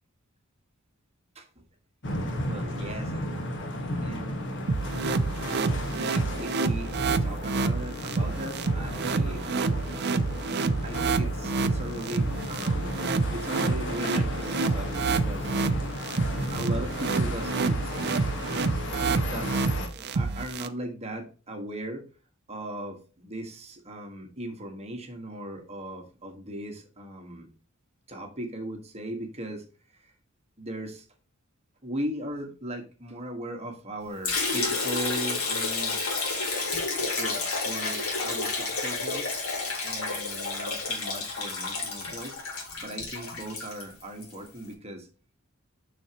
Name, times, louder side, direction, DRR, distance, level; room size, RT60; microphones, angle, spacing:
sound 1, 2.0-19.9, left 1 dB, 60° left, 1.3 m, -35 dB
voice 1, 2.5-3.4 4.0-4.7 6.0-6.9 7.2-9.4 10.8-12.9 13.3-15.5 15.8-15.9 16.5-18.0 19.2-19.7 19.9-22.0 22.5-27.5 28.1-29.6 30.0-30.1 30.6-31.1 31.8-36.0 37.2-39.3 39.8-42.4 42.8-45.1, right 1 dB, 30° right, 3 dB, 1.4 m, -38 dB
sound 2, 4.7-20.7, right 3 dB, 50° right, 0.5 m, -28 dB
Liquid, 34.2-44.3, left 3 dB, 85° left, 2.0 m, -30 dB
6.8 x 5.9 x 2.9 m, 0.35 s
head